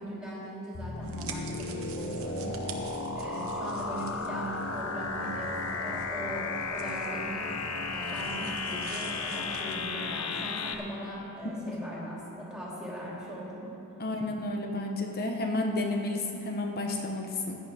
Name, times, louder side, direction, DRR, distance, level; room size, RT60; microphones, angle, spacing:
voice 1, 0.0-2.6 3.1-7.5 7.9-14.0, right 1 dB, 5° right, -7 dB, 3.1 m, -40 dB
sound 1, 0.7-10.7, left 3 dB, 75° left, 0.8 m, -34 dB
sound 2, 1.0-9.7, right 3 dB, 65° right, 1.1 m, -44 dB
voice 2, 14.0-17.6, left 2 dB, 45° left, 2 dB, 1.2 m, -31 dB
16.0 x 11.0 x 3.6 m, 2.9 s
head